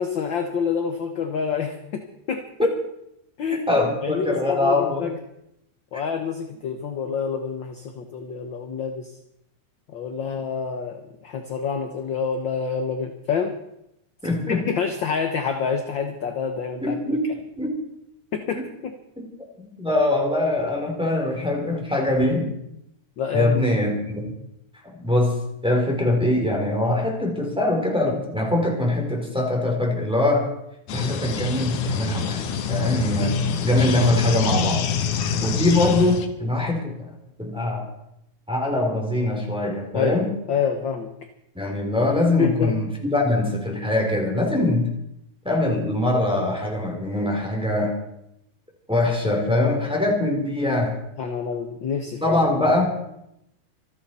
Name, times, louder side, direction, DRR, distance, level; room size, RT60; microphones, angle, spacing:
voice 1, 0.0-2.4 3.4-3.7 4.0-5.1 5.9-9.1 9.9-13.5 14.5-17.0 18.3-18.9 23.2-23.7 39.9-40.2 40.5-41.1 42.4-42.7 49.6-49.8 51.2-52.5, left 6 dB, 60° left, 5 dB, 1.3 m, -27 dB
voice 2, 3.7-5.1 14.2-14.6 16.8-17.8 18.5-18.6 19.8-22.5 23.3-24.2 24.8-30.5 30.9-34.9 35.4-36.9 37.4-37.9 38.5-40.3 41.5-45.0 45.4-48.0 48.9-51.0 52.2-52.9, left 1 dB, ahead, 0 dB, 3.1 m, -23 dB
sound 1, 30.9-36.3, left 6 dB, 90° left, 2.7 m, -25 dB
27.0 x 9.6 x 4.3 m, 0.82 s
omnidirectional pair, 3.4 m